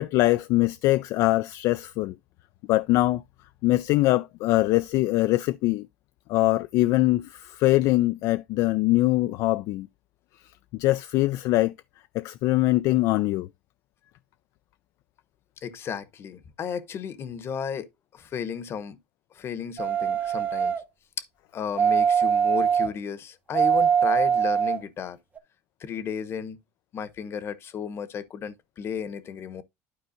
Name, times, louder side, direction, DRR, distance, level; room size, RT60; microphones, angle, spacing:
voice 1, 0.0-2.1 2.7-3.2 3.6-5.9 6.3-9.9 10.7-11.7 12.1-13.5, left 18 dB, 60° left, 0.3 m, -23 dB
voice 2, 15.6-19.0 19.3-20.7 21.5-25.2 25.8-26.6 26.9-29.6, left 7 dB, 40° left, 0.9 m, -34 dB
sound 1, 19.8-20.8 21.8-22.9 23.5-24.8 25.4-25.5, right 7 dB, 25° right, 0.8 m, -22 dB
11.5 x 4.6 x 2.6 m
supercardioid pair, 100°, 6 cm